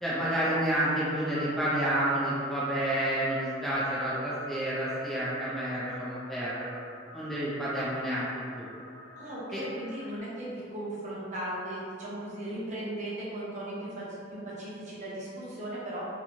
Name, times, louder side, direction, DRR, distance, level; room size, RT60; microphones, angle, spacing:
voice 1, 0.0-6.7 7.1-8.7 9.5-9.6, right 1 dB, ahead, -10 dB, 0.3 m, -30 dB
sound 1, 1.3-10.2, left 1 dB, 60° left, 0.8 m, -46 dB
voice 2, 9.2-16.0, right 1 dB, 40° right, -7 dB, 0.7 m, -37 dB
2.9 x 2.2 x 2.5 m, 2.4 s
head